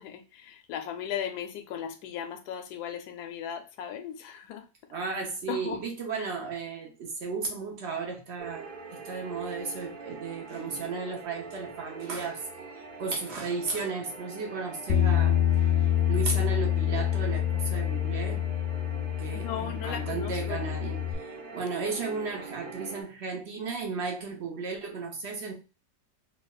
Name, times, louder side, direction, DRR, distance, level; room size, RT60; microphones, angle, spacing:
voice 1, 0.0-4.7 5.5-5.8 19.3-20.7, left 9 dB, 75° left, 1.0 m, -37 dB
voice 2, 4.9-12.5 13.0-18.5 19.2-25.5, right 4 dB, 50° right, 0.9 m, -35 dB
sound 1, 8.4-23.0, right 3 dB, 80° right, 1.5 m, -43 dB
Bass guitar, 14.9-21.1, left 11 dB, 90° left, 0.6 m, -26 dB
3.3 x 3.2 x 2.3 m
omnidirectional pair, 2.0 m